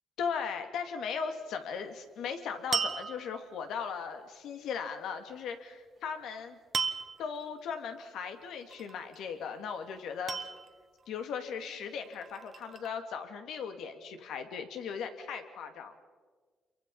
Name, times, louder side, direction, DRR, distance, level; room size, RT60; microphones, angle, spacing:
voice 1, 0.2-6.6 7.2-10.5 11.1-16.0, left 6 dB, 80° left, 6 dB, 2.4 m, -38 dB
sound 1, 2.7-3.6 6.7-7.4 8.7-9.2 10.3-11.0 12.0-12.9, right 5 dB, 45° right, 1.4 m, -35 dB
27.5 x 23.5 x 5.5 m, 1.5 s
cardioid pair, 90°, 0 cm